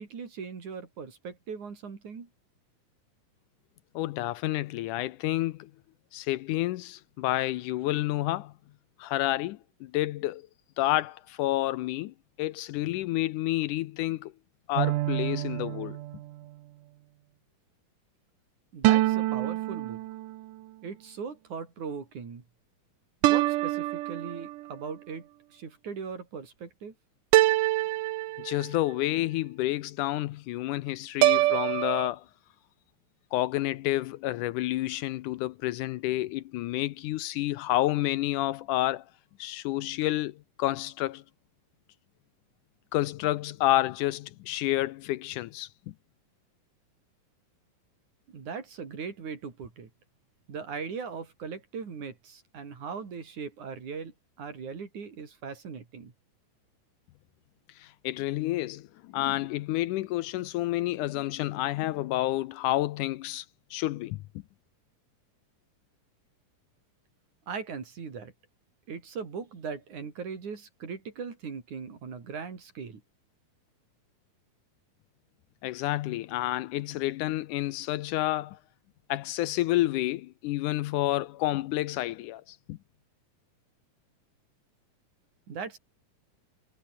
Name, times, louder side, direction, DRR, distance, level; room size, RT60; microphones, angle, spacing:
voice 1, 0.0-2.3 18.7-20.0 20.8-22.4 23.2-27.0 48.3-49.9 50.5-56.1 67.5-68.3 68.9-73.0 85.5-85.8, right 5 dB, 60° right, 5.2 m, -39 dB
voice 2, 4.0-5.7 6.1-8.5 9.0-10.5 10.8-14.3 14.7-16.0 28.4-32.3 33.3-39.1 39.4-41.2 42.9-45.9 57.8-63.5 63.7-64.2 75.6-78.6 79.1-82.8, left 16 dB, 75° left, 2.1 m, -29 dB
sound 1, 14.8-16.4 18.8-20.5 23.2-24.7 27.3-28.9 31.2-32.1, right 16 dB, 80° right, 2.3 m, -26 dB
omnidirectional pair, 3.8 m